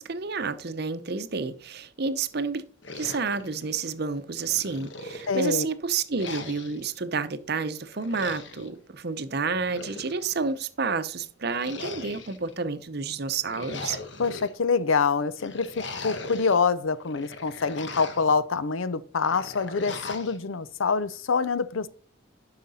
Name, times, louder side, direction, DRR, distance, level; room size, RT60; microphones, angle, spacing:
voice 1, 0.0-2.6 2.9-14.0, right 4 dB, 50° right, 0.7 m, -30 dB
sound 1, 2.8-4.0 4.4-5.6 6.2-6.9 7.9-8.7 9.5-10.5 11.5-12.5 13.3-14.5 15.4-16.6 17.0-18.4 19.2-20.4, left 3 dB, 60° left, 1.2 m, -39 dB
voice 2, 5.3-5.7 14.2-21.9, left 5 dB, 80° left, 0.6 m, -26 dB
11.5 x 5.8 x 4.1 m
head